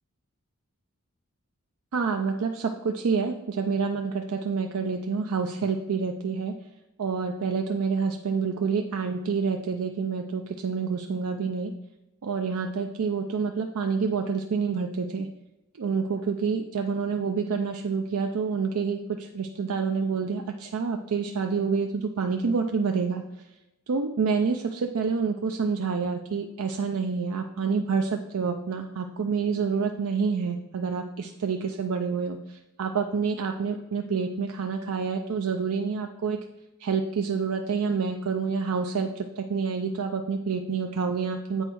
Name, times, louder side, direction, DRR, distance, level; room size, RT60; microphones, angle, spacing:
voice 1, 1.9-6.5 7.0-11.7 12.2-15.3 15.8-23.2 23.9-32.4 32.8-36.4 36.8-39.1 39.4-41.6, right 5 dB, 75° right, 5 dB, 0.5 m, -28 dB
8.1 x 4.4 x 4.5 m, 1.0 s
head